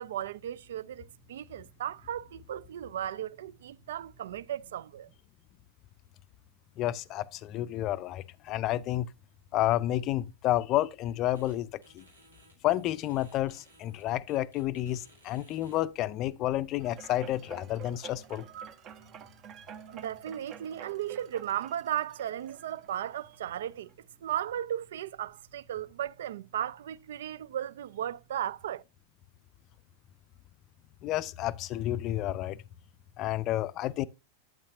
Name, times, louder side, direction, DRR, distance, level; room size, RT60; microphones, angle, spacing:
voice 1, 0.0-5.1 19.9-23.9 24.2-28.8, right 11 dB, 60° right, 0.3 m, -36 dB
voice 2, 6.8-9.1 9.5-12.1 12.6-18.4 31.0-32.6 33.2-34.1, left 14 dB, 35° left, 0.4 m, -30 dB
sound 1, 11.3-11.5 11.8-15.8, right 1 dB, 80° right, 2.8 m, -59 dB
sound 2, 16.8-23.4 23.9-24.0, right 8 dB, 35° right, 0.7 m, -49 dB
8.7 x 8.4 x 2.6 m
figure-of-eight pair, 90°, 0 cm